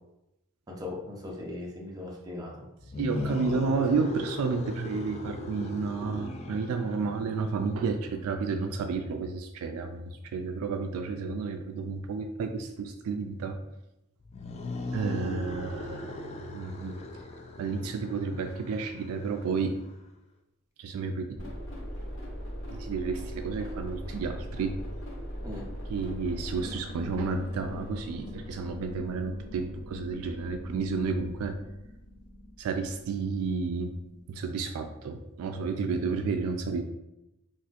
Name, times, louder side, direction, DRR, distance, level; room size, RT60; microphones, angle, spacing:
voice 1, 0.7-2.7 25.4-25.6, left 2 dB, 15° right, -2 dB, 0.6 m, -39 dB
sound 1, 2.8-8.0 14.2-19.9, left 2 dB, 30° left, 0.3 m, -38 dB
voice 2, 3.0-13.6 14.9-16.2 16.5-17.0 17.6-19.8 20.8-21.4 22.7-24.8 25.9-31.6 32.6-33.9 34.3-36.8, right 4 dB, 70° right, 7 dB, 0.3 m, -31 dB
sound 2, 21.3-34.6, equal, 60° left, 0.7 m, -41 dB
4.1 x 2.4 x 2.4 m, 0.90 s
head